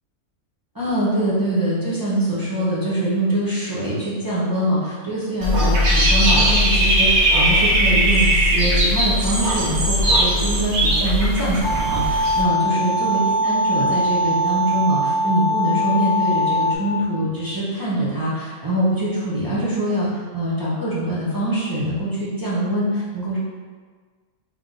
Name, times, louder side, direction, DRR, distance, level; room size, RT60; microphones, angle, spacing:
voice 1, 0.7-23.4, right 1 dB, 20° right, -9 dB, 0.7 m, -23 dB
Dog / Bird, 5.4-12.4, equal, 85° right, 1.3 m, -18 dB
sound 1, 11.6-16.8, equal, 90° left, 0.4 m, -21 dB
3.5 x 2.9 x 3.8 m, 1.5 s
omnidirectional pair, 1.6 m